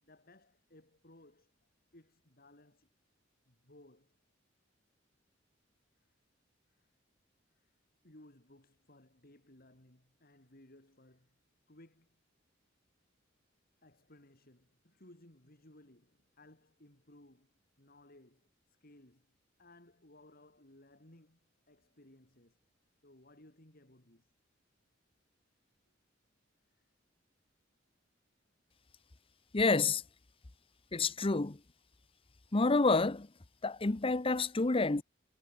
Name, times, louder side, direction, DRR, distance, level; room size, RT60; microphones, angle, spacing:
voice 1, 0.0-1.5 1.9-2.9 3.5-4.2 6.0-6.2 6.7-6.9 7.5-7.8 8.0-11.4 11.7-12.2 13.8-19.3 19.6-22.6 23.0-24.3 26.7-26.8, left 1 dB, 50° left, 4.0 m, -61 dB
voice 2, 29.5-30.0 30.9-31.6 32.5-33.3 33.6-35.0, left 3 dB, 30° left, 0.7 m, -28 dB
head